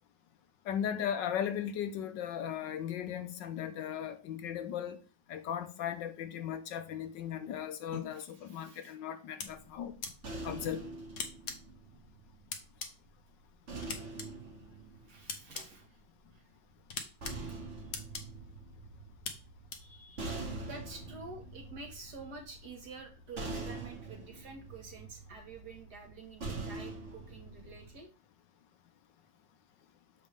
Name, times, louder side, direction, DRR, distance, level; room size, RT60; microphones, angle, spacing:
voice 1, 0.6-5.0 5.3-10.0 10.4-10.8, left 9 dB, 75° left, 1.4 m, -37 dB
sound 1, 7.9-8.0 9.4-9.5 10.0-10.1 11.2-11.5 12.5-12.9 13.8-14.3 15.3-15.6 16.9-17.3 17.9-18.2 19.2-19.3 19.7-19.8, left 5 dB, 50° left, 1.2 m, -38 dB
voice 2, 8.2-8.9 15.0-15.9 16.3-16.5 17.5-17.6 19.8-20.3 20.6-28.1, right 3 dB, 60° right, 2.2 m, -49 dB
sound 2, 9.4-12.7 13.7-15.9 16.9-28.0, right 3 dB, 40° right, 1.8 m, -44 dB
7.2 x 5.3 x 3.5 m
omnidirectional pair, 2.0 m